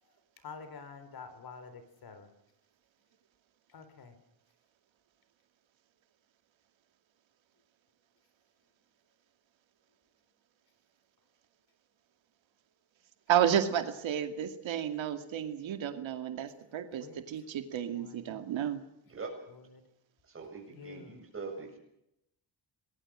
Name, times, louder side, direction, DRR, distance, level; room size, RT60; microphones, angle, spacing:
voice 1, 0.4-2.3 3.7-4.1 16.9-17.2 17.9-18.4 20.7-21.2, left 5 dB, 50° left, 11 dB, 4.0 m, -48 dB
voice 2, 13.3-18.8, right 9 dB, 80° right, 7 dB, 2.5 m, -31 dB
voice 3, 20.2-21.8, right 4 dB, 30° right, 2 dB, 7.4 m, -42 dB
28.0 x 21.0 x 6.3 m, 0.81 s
wide cardioid pair, 155°, 45 cm